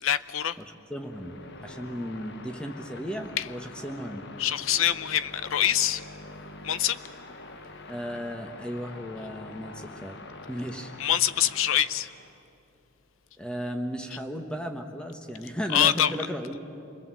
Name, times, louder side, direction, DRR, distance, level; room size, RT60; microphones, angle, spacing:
voice 1, 0.0-0.6 3.4-3.5 4.4-6.0 6.6-7.0 11.0-12.1 15.7-16.1, left 10 dB, 75° left, 15 dB, 0.7 m, -24 dB
voice 2, 0.6-1.4 1.6-4.3 7.9-10.2 10.5-10.9 13.4-16.6, equal, 5° left, 4 dB, 1.4 m, -35 dB
sound 1, 0.9-12.4, left 2 dB, 50° left, 1.2 m, -45 dB
28.0 x 21.0 x 7.8 m, 2.8 s
head